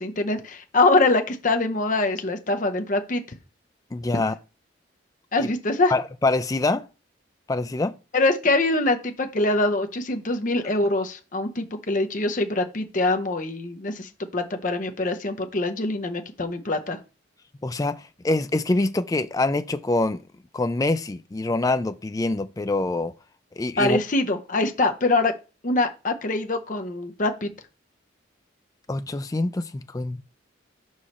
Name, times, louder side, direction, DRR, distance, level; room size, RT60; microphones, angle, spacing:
voice 1, 0.0-3.2 4.1-4.2 5.3-5.9 8.1-17.0 23.8-25.3 25.6-27.5, left 2 dB, 40° left, 0.7 m, -24 dB
voice 2, 3.9-4.3 5.4-5.5 5.9-6.8 7.5-7.9 17.6-20.2 20.5-23.1 23.6-24.0 28.9-30.2, left 2 dB, 20° left, 0.3 m, -25 dB
5.4 x 4.8 x 4.2 m
head